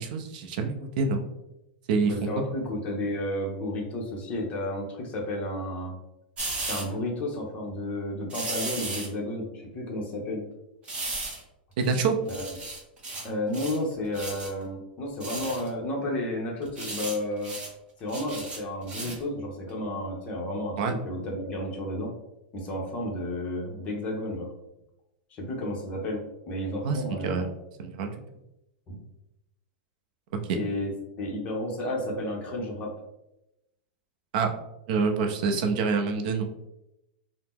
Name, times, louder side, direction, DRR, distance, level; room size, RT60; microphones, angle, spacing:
voice 1, 0.0-1.3 1.9-2.5 11.8-12.2 20.8-20.9 26.8-27.5 27.8-28.1 30.3-30.6 34.3-34.5 34.9-36.5, right 4 dB, 55° right, 5 dB, 0.5 m, -26 dB
voice 2, 2.0-5.9 6.6-10.4 12.2-12.5 13.2-17.6 18.0-22.1 22.5-24.5 25.3-27.4 28.9-29.0 30.5-30.9 31.2-32.9, left 1 dB, 25° left, -1 dB, 0.8 m, -32 dB
sound 1, 6.4-6.8 8.3-9.1 10.9-11.4 11.8-11.9 12.3-13.3 13.5-13.8 14.1-14.5 15.2-15.7 16.6-17.2 17.4-17.7 18.1-19.2 19.7-19.8, right 2 dB, 20° right, 0.8 m, -35 dB
2.8 x 2.0 x 3.5 m, 0.89 s
supercardioid pair, 155°, 5 cm